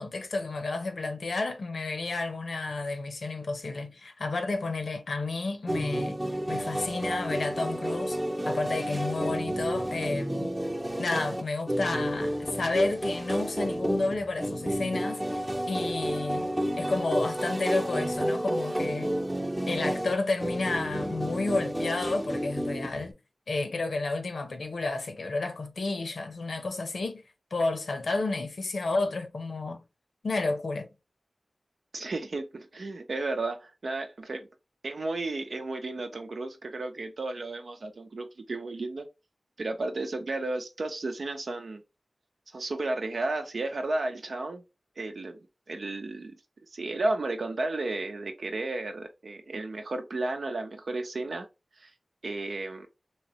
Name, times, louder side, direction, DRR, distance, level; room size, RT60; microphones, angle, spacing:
voice 1, 0.0-6.2 6.5-8.2 8.4-10.5 11.0-15.4 15.7-16.5 16.8-19.1 19.7-23.1 23.5-27.2 27.5-29.8 30.2-30.9, left 3 dB, 85° left, 0.7 m, -31 dB
sound 1, 5.7-23.1, equal, 25° right, 0.8 m, -31 dB
voice 2, 31.9-34.5 34.8-39.1 39.6-41.8 42.5-44.6 45.0-45.4 45.7-46.3 46.7-51.5 51.8-51.9 52.2-52.9, right 2 dB, 80° right, 0.8 m, -33 dB
3.2 x 3.0 x 3.0 m
cardioid pair, 45°, 0 cm